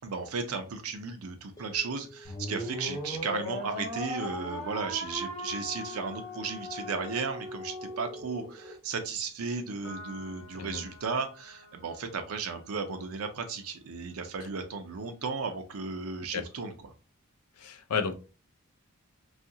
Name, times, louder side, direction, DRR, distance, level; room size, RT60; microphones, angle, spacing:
voice 1, 0.0-16.9, right 5 dB, 75° right, 0.5 m, -35 dB
sound 1, 1.6-9.9, equal, 15° left, 0.5 m, -58 dB
sound 2, 2.2-8.7, left 1 dB, 35° left, 1.0 m, -38 dB
Piano, 9.8-16.5, left 1 dB, 60° left, 0.8 m, -54 dB
voice 2, 17.6-18.1, left 5 dB, 90° left, 0.5 m, -32 dB
2.7 x 2.4 x 2.7 m
head